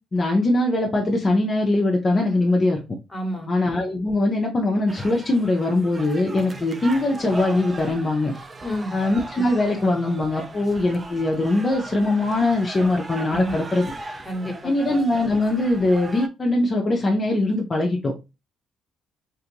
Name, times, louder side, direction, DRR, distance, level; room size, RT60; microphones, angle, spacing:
voice 1, 0.1-2.8 3.5-8.3 8.9-13.9 14.6-18.1, left 2 dB, 35° left, 0 dB, 0.6 m, -21 dB
voice 2, 3.1-3.5 8.6-9.0 13.3-13.6 14.2-14.8, equal, 10° left, 2 dB, 1.1 m, -29 dB
sound 1, 4.9-16.3, right 3 dB, 30° right, 0.4 m, -38 dB
2.6 x 2.4 x 2.9 m, 0.27 s
cardioid pair, 80°, 0 cm